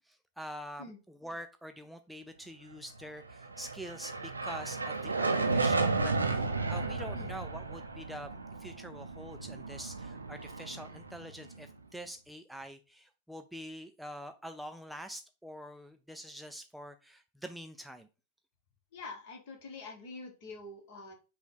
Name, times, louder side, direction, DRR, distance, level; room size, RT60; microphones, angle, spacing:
voice 1, 0.1-18.1, equal, ahead, 6 dB, 0.3 m, -45 dB
sound 1, 3.3-11.7, right 3 dB, 80° right, 0.5 m, -33 dB
voice 2, 18.9-21.1, left 3 dB, 50° left, 3 dB, 1.2 m, -45 dB
5.7 x 2.3 x 3.7 m, 0.32 s
figure-of-eight pair, 90°, 0 cm